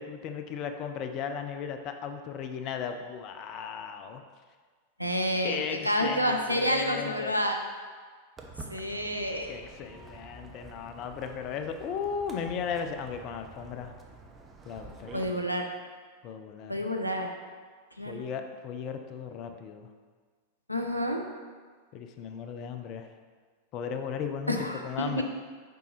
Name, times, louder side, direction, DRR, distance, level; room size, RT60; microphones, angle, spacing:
voice 1, 0.0-4.2 5.4-7.3 9.5-13.9 14.7-15.4 16.2-16.9 18.1-19.9 21.9-23.1 23.7-25.2, left 7 dB, 40° left, 7 dB, 0.5 m, -36 dB
voice 2, 5.0-7.6 8.7-9.5 15.1-15.7 16.7-17.3 18.0-18.2 20.7-21.2 24.5-25.2, equal, 90° right, 3 dB, 0.6 m, -29 dB
Walk footsteps, 8.4-15.3, right 3 dB, 20° right, 0.7 m, -48 dB
6.8 x 5.2 x 3.2 m, 1.5 s
figure-of-eight pair, 90°, 0 cm